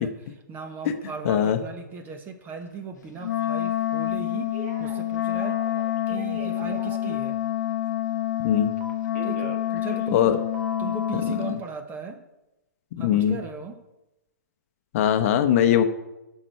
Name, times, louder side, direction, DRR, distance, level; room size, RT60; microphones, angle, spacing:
voice 1, 0.0-5.6 6.1-7.4 9.2-10.3 10.8-12.2 13.0-13.8, right 4 dB, 20° right, 6 dB, 1.1 m, -37 dB
voice 2, 1.2-1.6 8.4-8.7 10.1-10.4 11.3-11.4 12.9-13.4 14.9-15.8, left 10 dB, 45° left, 8 dB, 0.8 m, -20 dB
Wind instrument woodwind instrument, 3.2-11.6, left 12 dB, 65° left, 0.5 m, -27 dB
Telephone, 4.5-5.0 5.3-7.1 8.8-10.3 10.5-11.2, right 4 dB, 45° right, 1.5 m, -39 dB
11.5 x 6.6 x 4.6 m, 0.98 s
hypercardioid pair, 140°, 10 cm